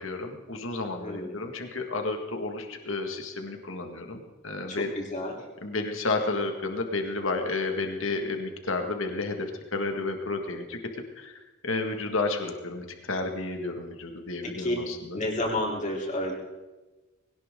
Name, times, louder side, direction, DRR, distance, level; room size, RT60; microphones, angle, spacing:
voice 1, 0.0-4.9 5.6-10.8 11.2-11.4 11.6-15.2, left 3 dB, 70° left, 4 dB, 2.0 m, -31 dB
voice 2, 1.0-1.3 4.7-5.3 14.4-14.8 15.1-16.3, left 1 dB, 35° left, -2 dB, 3.7 m, -30 dB
21.0 x 18.0 x 3.8 m, 1.2 s
head